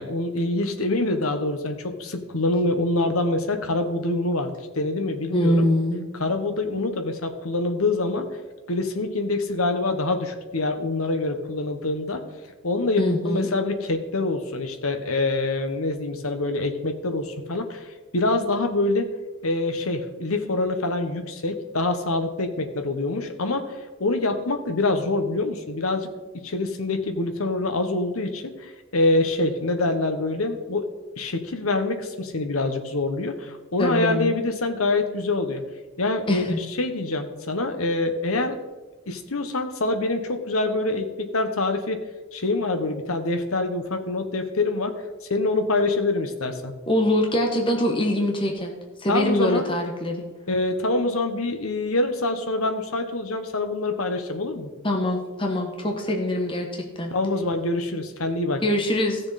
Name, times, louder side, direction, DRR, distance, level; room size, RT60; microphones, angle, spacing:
voice 1, 0.0-5.6 6.2-8.2 8.7-12.2 12.6-19.1 19.4-26.1 26.4-30.9 31.2-35.6 36.0-38.6 39.1-42.0 42.3-44.9 45.3-46.7 49.1-49.7 50.5-54.7 57.1-58.6, left 2 dB, 80° left, 6 dB, 1.2 m, -25 dB
voice 2, 5.3-6.1 13.0-13.5 33.8-34.3 36.3-36.6 46.9-48.7 49.0-50.2 54.8-57.1 58.6-59.2, left 1 dB, 25° left, 2 dB, 1.1 m, -23 dB
15.5 x 6.7 x 4.2 m, 1.2 s
head